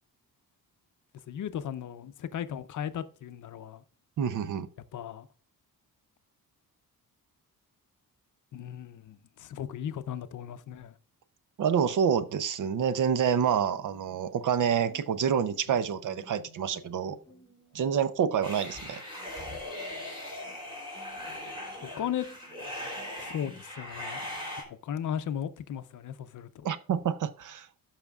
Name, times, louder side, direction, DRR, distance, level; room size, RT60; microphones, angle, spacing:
voice 1, 1.3-3.8 4.9-5.3 8.5-10.9 21.8-22.3 23.2-24.4 24.7-26.7, left 9 dB, 60° left, 0.6 m, -36 dB
voice 2, 4.2-4.7 11.6-17.2 17.7-19.0 26.6-27.7, right 7 dB, 60° right, 0.7 m, -27 dB
sound 1, 13.9-23.7, left 2 dB, 5° left, 2.4 m, -56 dB
sound 2, 18.4-24.6, left 1 dB, 15° right, 3.2 m, -39 dB
17.5 x 5.8 x 2.4 m
wide cardioid pair, 155°, 35 cm